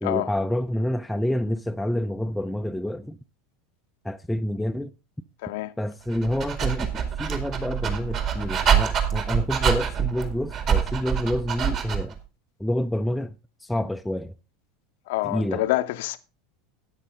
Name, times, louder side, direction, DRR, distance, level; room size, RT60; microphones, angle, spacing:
voice 1, 0.0-3.2 4.0-4.9 5.8-6.9 7.2-12.1 12.6-13.3 13.6-14.3 15.2-15.6, left 1 dB, 5° left, 0.5 m, -28 dB
voice 2, 5.4-5.7 15.1-16.2, left 16 dB, 60° left, 0.7 m, -26 dB
Dog, 6.1-12.2, right 8 dB, 40° right, 2.2 m, -26 dB
12.5 x 9.1 x 3.7 m
figure-of-eight pair, 80°, 0 cm